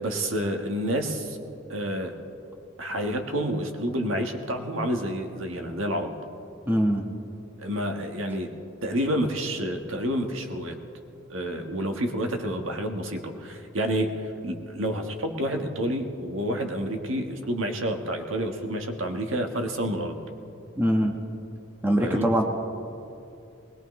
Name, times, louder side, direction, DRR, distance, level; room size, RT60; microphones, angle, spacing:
voice 1, 0.0-1.4 1.7-2.1 2.8-6.1 7.6-8.5 8.8-10.8 11.3-14.1 14.4-20.1 22.0-22.3, equal, 85° right, 4 dB, 1.5 m, -29 dB
voice 2, 6.7-7.0 20.8-21.1 21.8-22.4, equal, 10° right, 2 dB, 1.2 m, -22 dB
22.0 x 20.5 x 3.2 m, 2.6 s
head